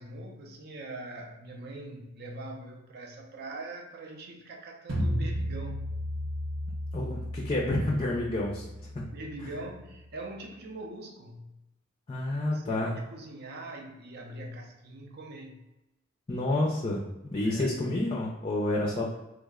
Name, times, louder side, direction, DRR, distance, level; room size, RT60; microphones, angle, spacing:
voice 1, 0.0-5.9 8.9-11.6 12.4-15.6 17.4-18.0, right 2 dB, 55° right, 2 dB, 0.5 m, -43 dB
sound 1, 4.9-9.9, equal, 85° right, 0.9 m, -34 dB
voice 2, 6.9-8.7 12.1-12.9 16.3-17.0 17.3-19.1, left 1 dB, 25° left, -3 dB, 0.4 m, -29 dB
3.2 x 2.1 x 3.5 m, 0.95 s
head